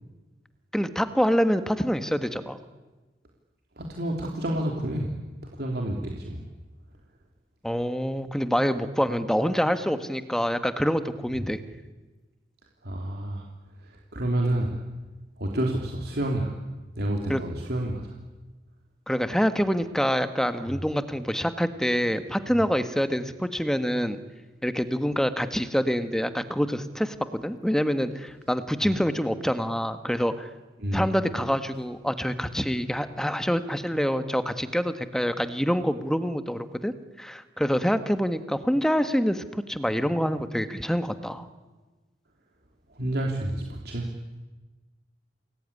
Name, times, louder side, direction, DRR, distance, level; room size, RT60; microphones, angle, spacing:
voice 1, 0.7-2.6 7.6-11.6 17.3-17.4 19.1-24.2 24.6-30.5 30.9-41.5, equal, 5° left, 10 dB, 1.5 m, -26 dB
voice 2, 3.8-5.1 5.5-6.4 12.8-13.5 14.1-14.7 15.4-16.6 17.0-18.1 30.8-31.1 42.9-44.1, right 1 dB, 65° right, 0 dB, 3.1 m, -29 dB
28.5 x 20.5 x 9.9 m, 1.2 s
head